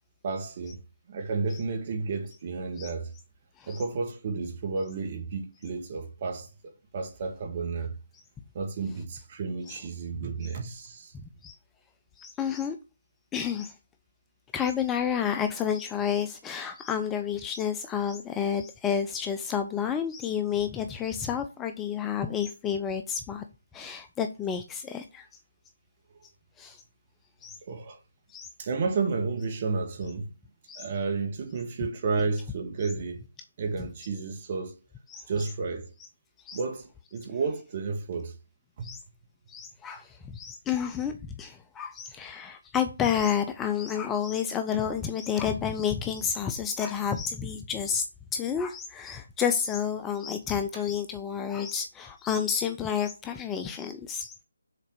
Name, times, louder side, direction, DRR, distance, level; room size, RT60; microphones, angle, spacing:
voice 1, 0.2-0.8 1.1-3.1 3.7-6.5 6.9-8.0 8.5-11.1 27.6-28.0 28.6-30.3 30.8-33.2 33.6-34.7 35.3-35.9 36.5-38.3 38.8-38.9, right 4 dB, 35° right, 1.8 m, -31 dB
voice 2, 12.2-12.8 13.3-13.7 14.5-23.4 23.7-25.3 26.6-26.8 27.4-27.6 28.3-28.5 30.7-30.8 35.1-35.5 36.5-36.6 38.8-39.0 39.5-48.0 48.3-54.3, left 8 dB, 10° left, 0.5 m, -30 dB
6.5 x 4.1 x 6.2 m
figure-of-eight pair, 155°, 0 cm